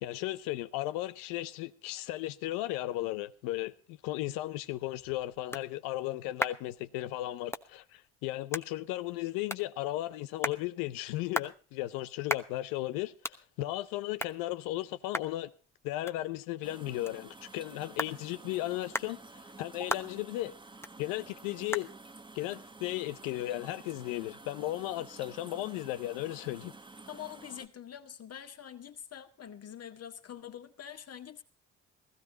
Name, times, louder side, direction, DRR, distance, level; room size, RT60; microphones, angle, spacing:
voice 1, 0.0-13.1 13.6-15.5 15.8-20.5 21.0-21.9 22.3-26.7, left 16 dB, 85° left, 0.8 m, -35 dB
sound 1, 6.0-23.9, left 1 dB, 10° left, 1.1 m, -42 dB
sound 2, 16.6-27.7, right 3 dB, 15° right, 1.0 m, -51 dB
voice 2, 27.1-31.4, left 9 dB, 50° left, 1.8 m, -45 dB
16.5 x 15.0 x 3.9 m
hypercardioid pair, 60°, 33 cm